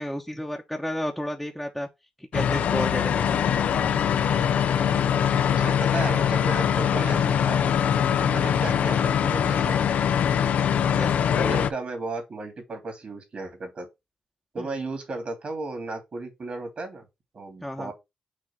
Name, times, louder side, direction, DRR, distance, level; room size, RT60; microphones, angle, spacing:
voice 1, 0.0-1.9 2.3-3.7 11.0-11.1 14.6-14.7 17.6-17.9, left 1 dB, 5° left, 1.0 m, -32 dB
sound 1, 2.3-11.7, left 8 dB, 75° left, 0.5 m, -23 dB
voice 2, 5.6-7.6 8.2-9.9 11.4-13.9 14.5-17.0 17.3-17.9, right 3 dB, 50° right, 2.9 m, -34 dB
6.3 x 2.8 x 5.6 m
cardioid pair, 70°, 3 cm